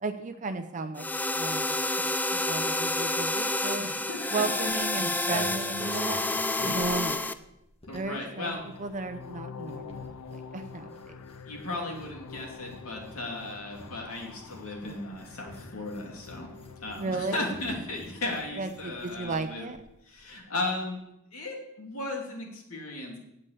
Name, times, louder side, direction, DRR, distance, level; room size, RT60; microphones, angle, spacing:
voice 1, 0.0-1.1 1.3-3.9 4.3-6.2 6.6-7.4 7.9-8.5 8.8-11.2 16.9-17.4 18.6-19.8, right 3 dB, 35° right, 8 dB, 0.7 m, -34 dB
sound 1, 1.0-7.3, left 2 dB, 10° left, 0.4 m, -29 dB
voice 2, 3.8-4.7 7.9-8.6 11.4-16.5 16.8-19.7 20.0-21.0 21.3-23.2, left 2 dB, 70° left, -1 dB, 3.0 m, -36 dB
sound 2, 4.6-8.3 8.5-19.5 19.7-19.8 20.1-20.4, equal, 25° left, 1.8 m, -46 dB
sound 3, 8.5-18.6, left 5 dB, 90° left, 0.6 m, -46 dB
8.7 x 8.2 x 8.4 m, 0.87 s
head